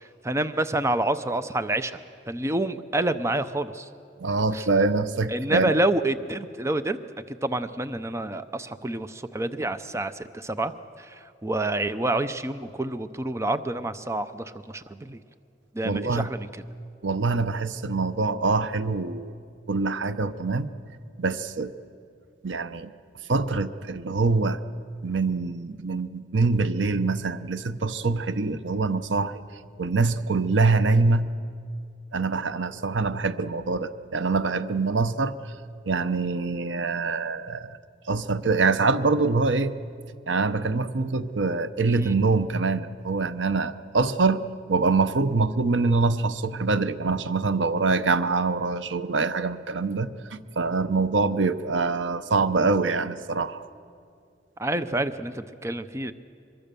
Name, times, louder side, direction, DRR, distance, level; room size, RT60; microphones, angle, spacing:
voice 1, 0.2-2.0 2.3-3.9 4.5-4.7 5.3-7.0 7.3-10.7 11.0-15.2 15.7-16.6 41.9-42.2 54.6-56.1, right 1 dB, 15° right, 11 dB, 0.6 m, -28 dB
voice 2, 4.2-5.8 15.8-16.3 17.0-19.3 19.7-20.7 21.2-21.7 22.4-22.9 23.3-24.6 25.0-29.4 29.8-31.3 32.1-35.3 35.9-37.8 38.1-39.8 40.3-44.4 44.7-53.7, right 3 dB, 85° right, 12 dB, 0.8 m, -24 dB
24.0 x 22.0 x 6.9 m, 2.3 s
head